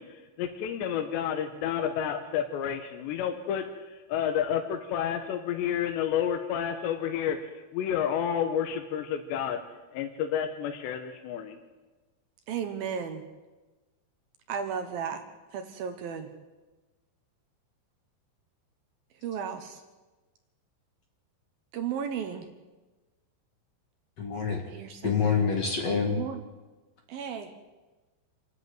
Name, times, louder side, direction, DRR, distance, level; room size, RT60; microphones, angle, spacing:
voice 1, 0.0-9.6 9.9-11.6, left 9 dB, 75° left, 5 dB, 3.2 m, -30 dB
voice 2, 12.5-13.2 14.5-15.2 15.5-16.3 19.2-19.8 21.7-22.5 24.7-25.4 26.1-26.4 27.1-27.5, right 7 dB, 65° right, 6 dB, 2.6 m, -34 dB
voice 3, 24.2-24.6 25.0-26.2, left 5 dB, 45° left, 2 dB, 2.4 m, -26 dB
27.0 x 11.0 x 9.3 m, 1.2 s
omnidirectional pair, 5.3 m